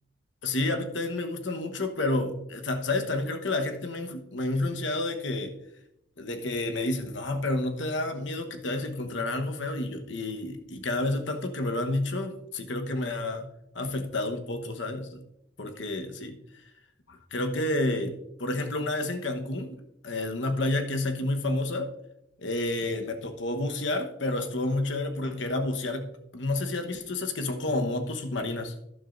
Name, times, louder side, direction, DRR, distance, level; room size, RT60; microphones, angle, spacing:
voice 1, 0.4-5.6 6.2-13.5 13.7-15.2 15.6-16.4 17.1-19.8 20.0-21.9 22.4-28.7, left 2 dB, 70° left, 6 dB, 1.1 m, -30 dB
12.5 x 11.0 x 2.6 m, 0.82 s
head